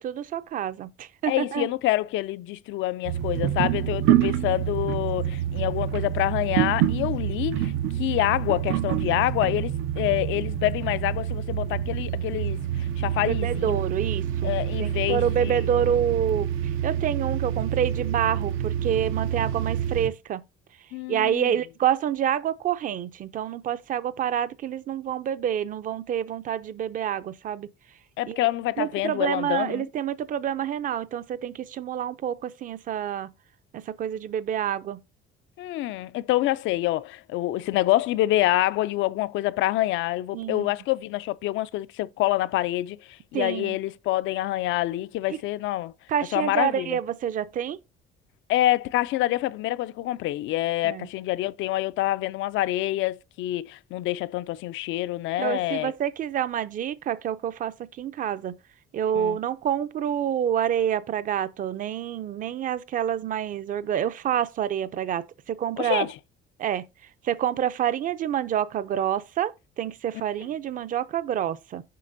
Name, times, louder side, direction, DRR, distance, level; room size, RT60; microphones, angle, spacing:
voice 1, 0.0-1.7 13.3-16.5 16.8-20.4 21.1-27.7 28.3-28.4 28.8-33.3 33.7-35.0 40.3-40.7 43.3-43.8 45.3-45.4 46.1-47.8 50.8-51.1 55.4-58.6 58.9-66.1 66.6-66.8 67.2-71.8, right 9 dB, 40° right, 0.5 m, -27 dB
voice 2, 1.3-12.6 13.0-13.8 14.4-15.7 20.9-21.5 28.2-29.9 35.6-43.0 43.3-45.9 46.3-47.0 48.5-55.9 59.1-59.4 65.8-66.1, left 16 dB, 75° left, 0.5 m, -26 dB
sound 1, 3.0-20.1, right 11 dB, 85° right, 0.6 m, -27 dB
7.6 x 5.8 x 2.6 m
cardioid pair, 150°, 20 cm